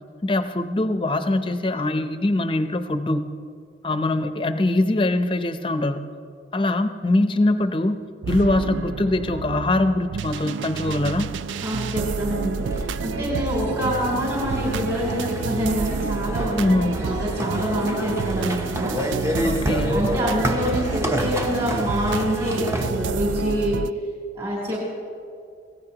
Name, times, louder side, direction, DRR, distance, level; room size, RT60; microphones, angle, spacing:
voice 1, 0.2-3.3 3.8-6.0 6.5-8.0 8.3-11.3 16.6-17.0 19.4-20.1, left 2 dB, 25° left, 8 dB, 0.7 m, -22 dB
sound 1, 8.2-23.9, right 6 dB, 85° right, 0.3 m, -29 dB
voice 2, 11.6-12.7 13.0-19.0 19.9-23.8 24.3-24.8, equal, 35° right, -6 dB, 3.7 m, -26 dB
sound 2, 12.6-22.9, equal, 15° right, 0.8 m, -29 dB
25.0 x 17.0 x 2.9 m, 2.3 s
head